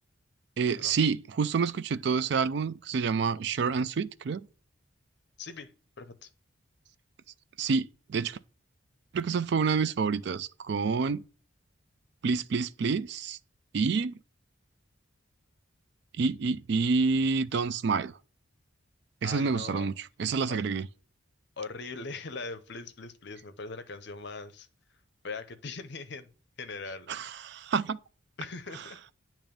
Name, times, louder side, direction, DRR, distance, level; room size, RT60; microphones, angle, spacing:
voice 1, 0.6-4.4 7.6-8.4 9.1-11.2 12.2-13.4 13.7-14.2 16.2-18.1 19.2-19.9 20.2-20.9 27.1-28.0, right 5 dB, 55° right, 0.3 m, -28 dB
voice 2, 5.4-5.7 6.0-6.3 19.2-19.9 20.5-20.6 21.6-24.7 25.2-26.3 26.6-27.4 28.4-29.0, left 4 dB, 55° left, 0.6 m, -41 dB
8.8 x 3.0 x 5.1 m
head